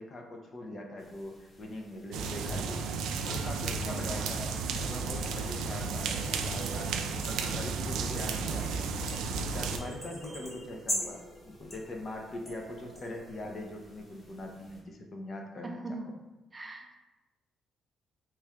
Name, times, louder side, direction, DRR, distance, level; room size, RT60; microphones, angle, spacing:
voice 1, 0.0-2.8 3.2-4.5 4.8-7.0 7.2-8.9 9.3-16.1, left 1 dB, 45° left, 2 dB, 0.6 m, -42 dB
sound 1, 1.0-14.8, equal, 25° left, 1.1 m, -44 dB
sound 2, 2.1-9.8, right 5 dB, 85° right, 0.3 m, -33 dB
voice 2, 3.8-4.3 15.6-16.2 16.5-17.0, right 2 dB, 25° right, 3 dB, 0.5 m, -41 dB
3.1 x 2.4 x 4.2 m, 1.1 s
cardioid pair, 90°, 0 cm